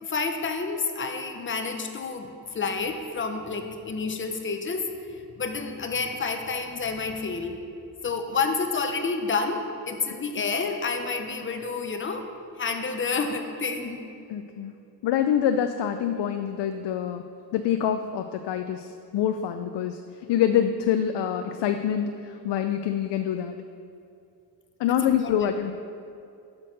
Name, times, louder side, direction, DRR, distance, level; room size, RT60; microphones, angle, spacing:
voice 1, 0.0-4.9 5.1-7.6 8.0-12.3 12.6-14.1 25.0-25.3, left 4 dB, 30° left, 6 dB, 0.7 m, -29 dB
voice 2, 14.3-14.7 15.0-17.2 17.5-20.0 20.3-23.6 24.8-25.7, left 9 dB, 85° left, 7 dB, 0.5 m, -26 dB
7.6 x 6.0 x 6.4 m, 2.6 s
wide cardioid pair, 165°, 41 cm